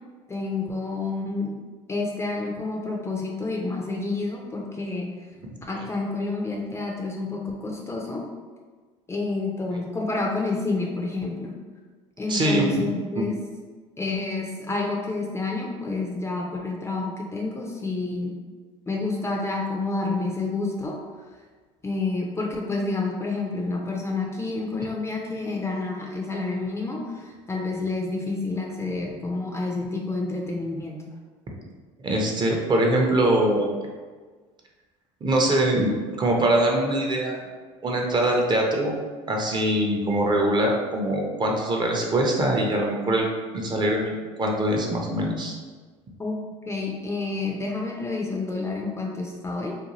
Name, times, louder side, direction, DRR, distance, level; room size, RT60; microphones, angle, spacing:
voice 1, 0.3-1.5 1.9-5.1 5.7-8.3 9.1-11.6 12.2-13.4 14.0-18.4 18.9-21.0 21.8-31.1 46.2-46.4 46.7-49.8, left 3 dB, 15° left, -1 dB, 0.4 m, -29 dB
voice 2, 12.3-12.8 13.2-13.3 32.0-33.8 35.2-35.9 36.2-37.5 37.8-38.9 39.3-43.3 43.5-45.5, right 1 dB, 30° right, 0 dB, 0.6 m, -23 dB
2.6 x 2.3 x 2.9 m, 1.4 s
hypercardioid pair, 75°, 16 cm